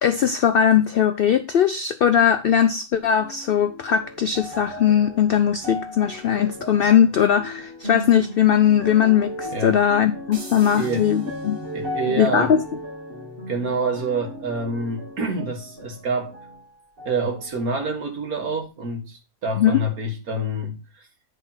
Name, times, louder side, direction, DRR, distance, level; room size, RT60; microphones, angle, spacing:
voice 1, 0.0-11.6 12.2-12.6 19.6-19.8, left 9 dB, 75° left, 0.5 m, -19 dB
sound 1, 3.2-16.7 17.0-17.9 18.6-18.7, left 1 dB, 40° right, 1.6 m, -36 dB
sound 2, 10.3-11.9, right 3 dB, 65° right, 1.9 m, -44 dB
voice 2, 10.8-11.1 11.7-12.5 13.5-16.3 17.1-21.1, right 2 dB, 80° right, 2.0 m, -27 dB
9.9 x 3.6 x 5.6 m
omnidirectional pair, 1.5 m